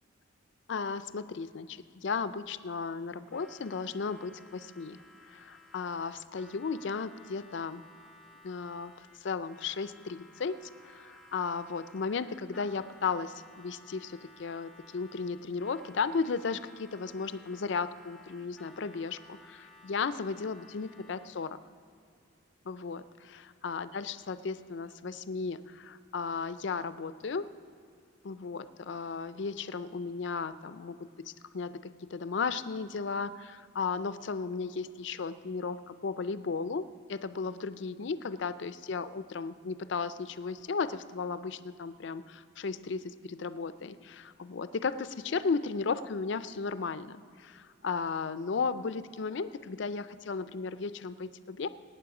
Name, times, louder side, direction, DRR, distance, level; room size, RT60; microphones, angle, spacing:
voice 1, 0.7-5.0 5.3-7.8 8.4-21.6 22.7-27.5 28.2-51.7, left 5 dB, 60° left, 14 dB, 0.4 m, -35 dB
Harmonica, 3.3-21.5, left 2 dB, ahead, 0.6 m, -57 dB
18.5 x 8.8 x 4.9 m, 2.5 s
head